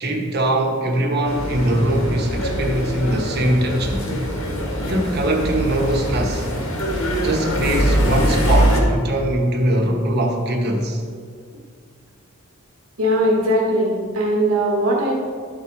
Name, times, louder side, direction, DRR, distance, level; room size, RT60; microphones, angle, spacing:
voice 1, 0.0-4.1 4.9-6.5 7.2-11.0, right 1 dB, 50° right, 2 dB, 1.1 m, -21 dB
sound 1, 1.3-8.8, equal, 85° left, 1.7 m, -22 dB
voice 2, 13.0-15.2, equal, 85° right, -3 dB, 1.2 m, -19 dB
12.0 x 4.4 x 4.6 m, 2.1 s
head